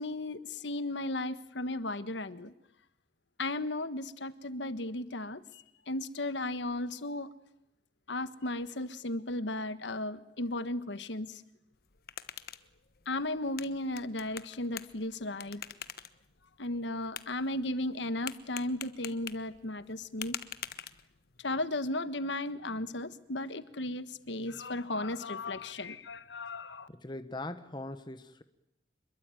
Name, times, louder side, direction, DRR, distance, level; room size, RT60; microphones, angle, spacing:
voice 1, 0.0-2.5 3.4-7.3 8.1-11.4 13.1-15.6 16.6-20.4 21.4-26.9, left 2 dB, 85° left, 13 dB, 1.4 m, -35 dB
sound 1, 11.7-21.4, left 10 dB, 55° left, 1.2 m, -46 dB
voice 2, 26.9-28.4, left 2 dB, 25° left, 10 dB, 1.2 m, -41 dB
26.5 x 22.0 x 9.2 m, 0.83 s
head